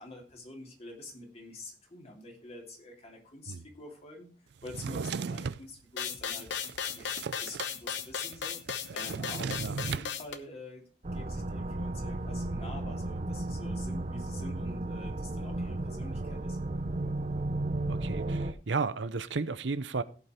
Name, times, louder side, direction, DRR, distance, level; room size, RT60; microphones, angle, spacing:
voice 1, 0.0-4.3 4.6-8.6 8.9-16.6, left 2 dB, 35° left, 3.0 m, -47 dB
Drawer open or close, 4.6-5.6 6.2-7.7 8.0-8.1 8.3-10.1, right 5 dB, 65° right, 0.4 m, -36 dB
sound 1, 6.0-10.4, left 7 dB, 80° left, 1.0 m, -36 dB
sound 2, 11.0-18.5, right 2 dB, 40° right, 0.8 m, -34 dB
voice 2, 17.9-20.0, right 4 dB, 85° right, 0.8 m, -33 dB
16.5 x 5.7 x 4.4 m
head